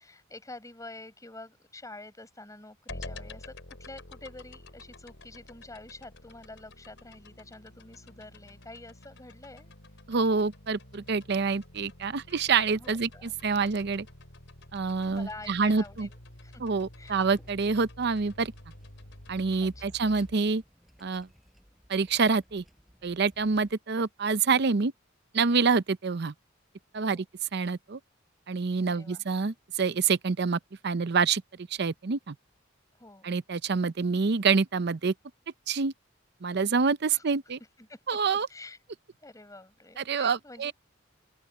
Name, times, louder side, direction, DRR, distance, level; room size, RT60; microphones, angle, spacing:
voice 1, 0.0-9.7 12.8-13.4 15.1-16.6 16.9-17.1 19.6-19.9 27.0-27.2 28.9-29.2 33.0-33.4 37.1-37.2 37.8-38.0 38.5-38.8 39.2-40.7, left 2 dB, 15° left, 6.2 m, -47 dB
sound 1, 2.9-20.3, left 1 dB, 65° left, 6.1 m, -49 dB
voice 2, 10.1-14.1 14.7-16.1 16.6-18.5 19.3-20.6 21.0-21.3 21.9-22.6 23.0-24.9 25.3-26.3 26.9-27.2 27.5-28.0 28.5-31.4 31.8-32.3 33.2-35.1 35.7-35.9 36.4-37.6 38.1-38.5 40.0-40.7, right 5 dB, 60° right, 0.6 m, -27 dB
sound 2, 17.2-23.7, equal, ahead, 6.5 m, -61 dB
open air
head